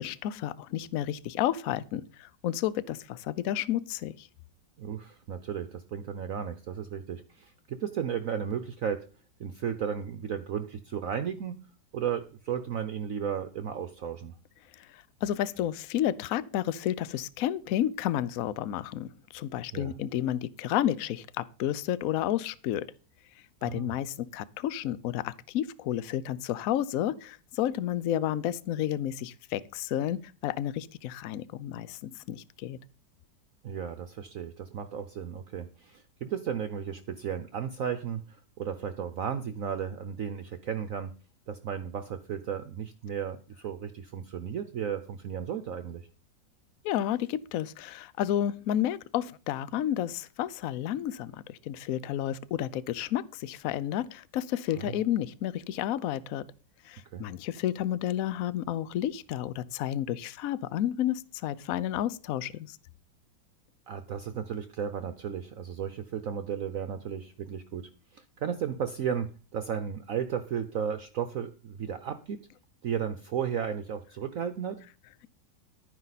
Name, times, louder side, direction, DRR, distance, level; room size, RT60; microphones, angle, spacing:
voice 1, 0.0-4.3 14.7-22.9 23.6-32.8 46.8-56.4 56.8-62.8, left 11 dB, 65° left, 0.9 m, -31 dB
voice 2, 4.8-9.1 9.4-11.6 11.9-14.3 19.7-19.9 23.6-23.9 33.6-41.1 41.5-46.1 54.8-55.0 57.1-57.3 63.9-72.4 72.8-74.8, right 8 dB, 60° right, 1.0 m, -34 dB
12.0 x 9.5 x 4.1 m
omnidirectional pair, 1.9 m